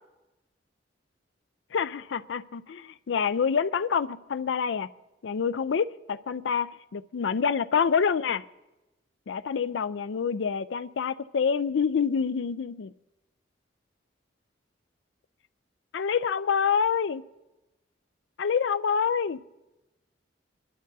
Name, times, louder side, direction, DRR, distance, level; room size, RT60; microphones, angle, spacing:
voice 1, 1.7-4.9 5.2-8.4 9.3-12.9 15.9-17.2 18.4-19.4, left 6 dB, 75° left, 0.4 m, -27 dB
24.5 x 11.5 x 2.7 m
head